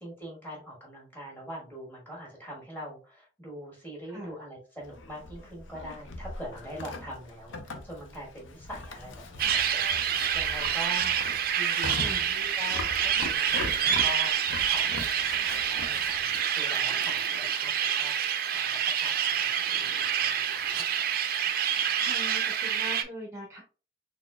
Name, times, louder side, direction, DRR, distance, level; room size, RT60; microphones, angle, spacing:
voice 1, 0.0-20.8, equal, 10° left, -3 dB, 1.6 m, -43 dB
Livestock farm animals working animals, 4.8-16.5, left 3 dB, 90° left, 0.6 m, -41 dB
sound 1, 9.4-23.0, right 8 dB, 50° right, 0.5 m, -27 dB
voice 2, 12.0-12.3 22.0-23.6, right 1 dB, 15° right, -1 dB, 0.7 m, -41 dB
4.0 x 3.6 x 2.2 m, 0.35 s
head